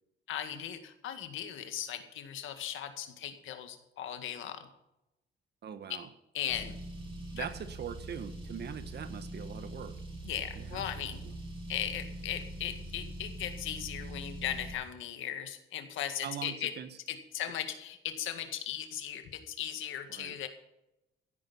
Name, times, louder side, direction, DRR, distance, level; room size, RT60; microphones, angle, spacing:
voice 1, 0.3-4.7 5.9-6.0 6.3-6.8 7.4-7.5 10.2-11.2 11.7-16.7 17.1-20.5, left 10 dB, 85° left, 7 dB, 1.9 m, -37 dB
voice 2, 5.6-6.1 7.3-10.0 10.6-10.8 11.2-11.3 16.2-17.0 20.1-20.4, right 8 dB, 55° right, 11 dB, 1.4 m, -42 dB
Car, 6.5-14.7, right 1 dB, 25° right, 6.2 m, -43 dB
15.5 x 9.3 x 5.6 m, 0.89 s
cardioid pair, 90°, 20 cm